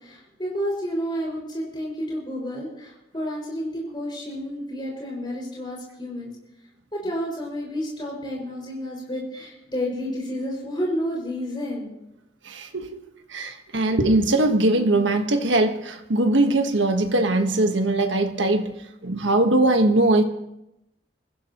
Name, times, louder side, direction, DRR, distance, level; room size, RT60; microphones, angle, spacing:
voice 1, 0.0-6.3 6.9-11.9, equal, 25° left, 6.0 m, -30 dB
voice 2, 12.4-13.0 13.3-18.7 19.0-20.2, right 2 dB, 75° right, 1.4 m, -21 dB
25.0 x 15.5 x 3.1 m
head